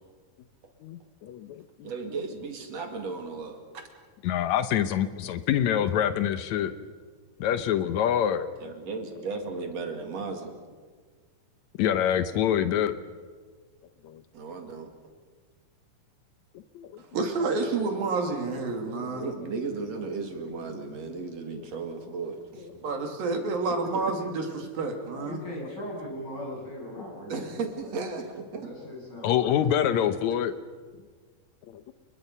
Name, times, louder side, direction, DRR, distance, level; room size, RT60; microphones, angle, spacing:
voice 1, 0.8-1.9 4.2-6.7 7.4-8.5 11.8-13.0 14.0-14.2 16.7-17.0 18.9-19.2 21.5-21.6 25.1-25.3 29.2-30.5 31.7-31.8, left 10 dB, 80° left, 11 dB, 1.6 m, -26 dB
voice 2, 1.8-3.8 8.6-10.6 14.3-14.9 19.2-22.7 23.9-24.1 27.3-28.7, right 4 dB, 50° right, 4 dB, 3.1 m, -35 dB
voice 3, 17.1-19.3 22.8-25.4, right 3 dB, 70° right, 3 dB, 4.4 m, -29 dB
voice 4, 25.2-28.0 28.6-29.7, equal, 25° left, -2 dB, 8.3 m, -39 dB
30.0 x 21.5 x 5.5 m, 1.5 s
omnidirectional pair, 4.3 m